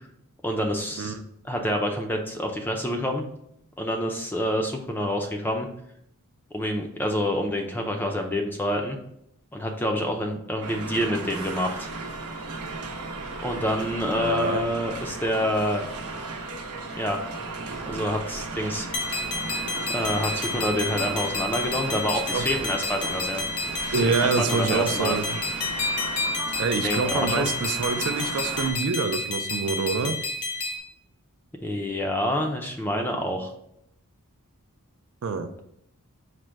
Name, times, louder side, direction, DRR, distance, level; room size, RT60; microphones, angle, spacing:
voice 1, 0.4-1.1 1.4-3.2 3.8-5.7 6.5-9.0 9.5-11.9 13.4-15.8 16.9-17.2 17.9-18.9 19.9-23.7 24.0-25.1 26.8-27.5 31.6-33.5, equal, 10° left, 3 dB, 0.4 m, -27 dB
sound 1, 10.6-28.7, right 3 dB, 85° right, 0.8 m, -35 dB
voice 2, 14.1-14.6 22.3-22.4 23.9-25.4 26.6-30.2 35.2-35.5, right 5 dB, 65° right, 8 dB, 0.4 m, -26 dB
sound 2, 18.9-30.8, left 2 dB, 85° left, 0.8 m, -30 dB
5.0 x 2.1 x 4.5 m, 0.74 s
head